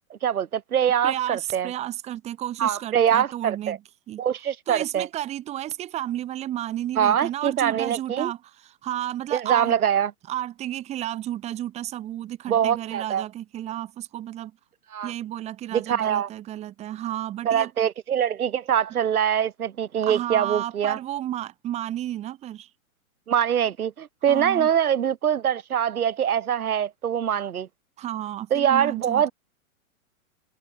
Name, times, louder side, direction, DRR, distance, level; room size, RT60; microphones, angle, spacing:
voice 1, 0.0-1.7 2.6-3.8 4.2-5.1 7.0-8.3 9.3-10.1 12.5-13.2 14.9-15.1 15.7-16.3 17.4-21.0 23.3-27.7 28.5-29.3, right 9 dB, 80° right, 6.2 m, -23 dB
voice 2, 1.0-3.8 4.1-4.2 4.7-9.7 10.3-14.5 15.0-17.7 20.0-22.7 24.3-24.7 28.0-29.3, right 13 dB, 15° right, 3.4 m, -32 dB
hypercardioid pair, 175°, 43 cm